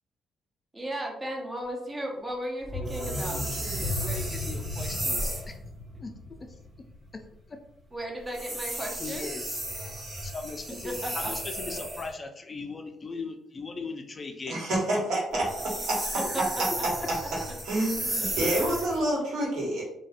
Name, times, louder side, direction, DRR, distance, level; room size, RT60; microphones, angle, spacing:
voice 1, 0.7-4.0 7.9-9.3 10.8-11.3 16.1-16.4 16.8-17.1, equal, 20° right, 0 dB, 0.5 m, -35 dB
sound 1, 2.6-7.4 7.7-7.8, left 1 dB, 5° left, 1.3 m, -35 dB
sound 2, 2.9-5.5 8.3-12.1 15.3-19.0, right 1 dB, 35° right, 0.9 m, -34 dB
voice 2, 3.8-5.3 6.0-6.1 7.5-7.6 9.0-9.6 10.2-14.6, left 4 dB, 35° left, 5 dB, 0.3 m, -39 dB
voice 3, 14.5-15.5 15.9-16.0 17.6-19.8, right 1 dB, 80° right, -4 dB, 0.9 m, -28 dB
2.4 x 2.1 x 2.4 m, 0.79 s
cardioid pair, 90°, 0 cm